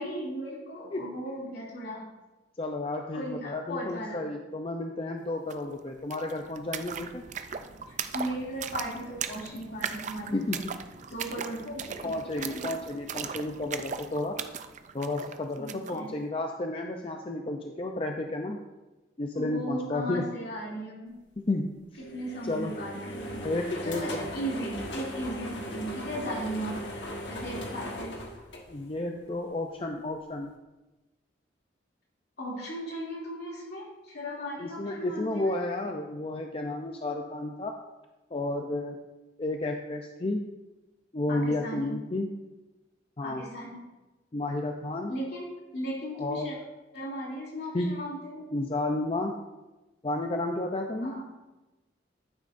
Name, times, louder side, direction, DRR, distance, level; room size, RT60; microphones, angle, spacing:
voice 1, 0.0-2.0 3.1-4.3 7.9-10.4 11.1-12.7 15.6-16.1 19.3-21.1 22.0-23.5 23.8-26.8 27.3-28.2 32.4-35.6 41.3-41.9 43.2-43.8 45.1-46.6 46.9-48.5 51.0-51.3, equal, 60° left, -4 dB, 2.7 m, -37 dB
voice 2, 2.6-7.2 10.3-10.6 12.0-14.4 14.9-18.6 19.2-20.3 21.5-21.7 22.5-22.7 23.4-24.3 28.7-30.5 34.6-37.7 38.3-39.0 39.4-40.4 41.1-42.3 43.2-43.4 44.3-45.1 46.2-46.5 47.7-47.9 48.5-49.3 50.0-51.1, left 2 dB, 30° left, 3 dB, 0.5 m, -32 dB
sound 1, 5.5-5.6 5.8-16.0, right 7 dB, 40° right, 0.4 m, -38 dB
sound 2, 22.0-29.3, equal, 75° left, 1.5 m, -38 dB
10.5 x 9.1 x 2.6 m, 1.1 s
head